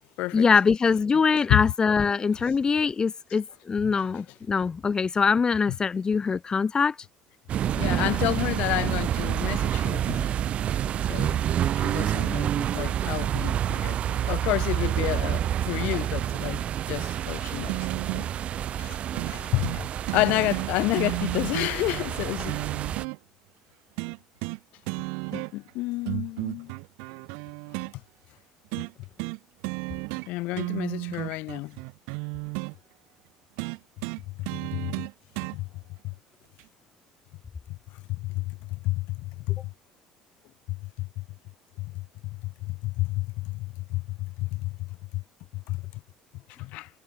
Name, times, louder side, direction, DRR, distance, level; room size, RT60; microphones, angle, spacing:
voice 1, 0.3-7.0, left 5 dB, 30° left, 2.2 m, -23 dB
voice 2, 3.8-4.2 7.7-10.3 11.1-11.4 11.7-17.8 18.1-18.3 18.8-19.8 20.1-22.6 25.3-26.7 30.3-31.8 34.7-34.9 35.5-35.6 38.2-38.6 38.8-39.6 40.7-40.8 41.8-42.0 42.6-44.7 45.1-45.2 45.7-45.8 46.6-46.9, left 20 dB, 70° left, 4.6 m, -30 dB
sound 1, 7.5-23.0, right 10 dB, 55° right, 1.2 m, -28 dB
sound 2, 17.7-18.3 19.2-19.3 19.6-19.8 20.1-23.2 24.0-24.6 24.9-25.7 26.1-27.9 28.7-28.9 29.2-29.4 29.6-30.3 30.5-32.7 33.6-35.6 36.6-36.7, right 35 dB, 80° right, 3.6 m, -33 dB
supercardioid pair, 75°, 3 cm